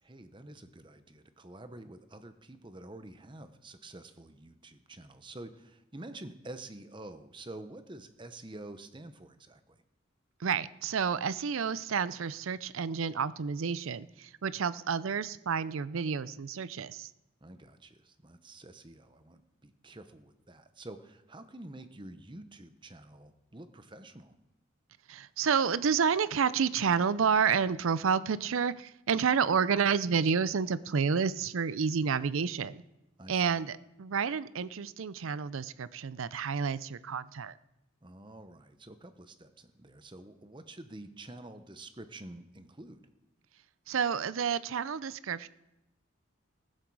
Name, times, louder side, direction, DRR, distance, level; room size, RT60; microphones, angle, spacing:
voice 1, 0.0-9.8 17.4-24.4 33.2-33.5 38.0-43.1, right 2 dB, 25° right, 10 dB, 0.8 m, -48 dB
voice 2, 10.4-17.1 25.1-32.8 33.3-37.5 43.9-45.5, right 6 dB, 75° right, 17 dB, 0.5 m, -30 dB
15.5 x 13.0 x 4.8 m, 0.90 s
head